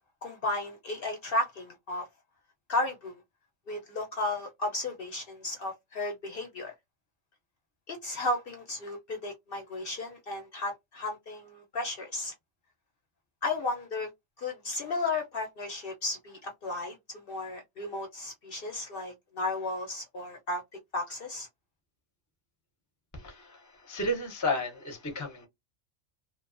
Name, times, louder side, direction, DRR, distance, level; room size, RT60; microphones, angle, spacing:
voice 1, 0.2-2.1 2.7-3.2 3.7-6.7 7.9-12.3 13.4-14.1 14.4-20.6 20.9-21.5, left 2 dB, 55° left, 0.7 m, -34 dB
voice 2, 23.1-25.5, left 1 dB, 20° left, 0.6 m, -33 dB
2.7 x 2.2 x 2.4 m
omnidirectional pair, 1.3 m